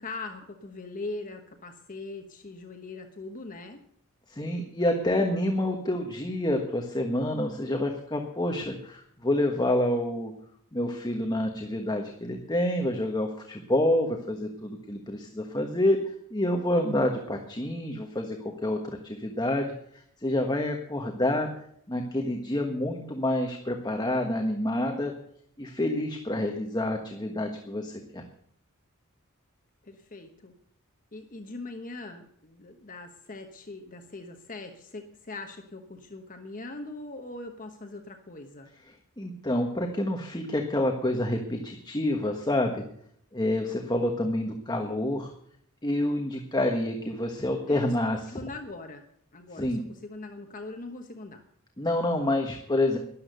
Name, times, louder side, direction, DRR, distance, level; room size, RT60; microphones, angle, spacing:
voice 1, 0.0-3.8 29.8-30.5 31.1-38.7 47.7-49.0 49.3-51.4, left 2 dB, 40° left, 4 dB, 1.1 m, -41 dB
voice 2, 4.3-10.3 10.7-19.7 20.2-21.5 21.9-25.1 25.6-28.2 38.9-42.8 43.3-45.3 45.8-48.4 49.6-49.8 51.8-53.0, left 1 dB, 20° left, 3 dB, 1.3 m, -28 dB
13.0 x 11.0 x 6.7 m, 0.68 s
head